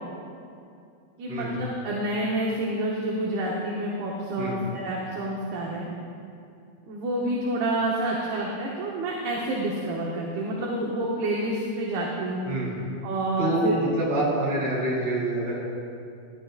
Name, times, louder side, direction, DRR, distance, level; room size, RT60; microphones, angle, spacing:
voice 1, 1.2-5.9 6.9-12.5 13.0-13.7, right 1 dB, 75° right, -3 dB, 2.7 m, -28 dB
voice 2, 12.5-12.8 13.4-15.6, right 1 dB, 45° right, -7 dB, 3.9 m, -26 dB
15.0 x 11.5 x 2.4 m, 2.4 s
omnidirectional pair, 4.9 m